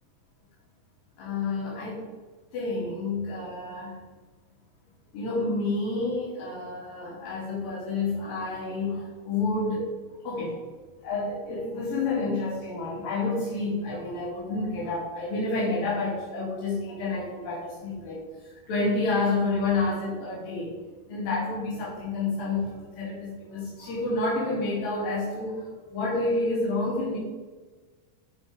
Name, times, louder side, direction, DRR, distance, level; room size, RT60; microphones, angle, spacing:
voice 1, 1.2-2.1 2.5-4.0 5.1-9.9 10.2-10.6 11.0-18.3 18.7-20.7 21.1-27.2, left 3 dB, 85° left, -8 dB, 4.3 m, -29 dB
13.5 x 4.7 x 5.0 m, 1.4 s
omnidirectional pair, 3.9 m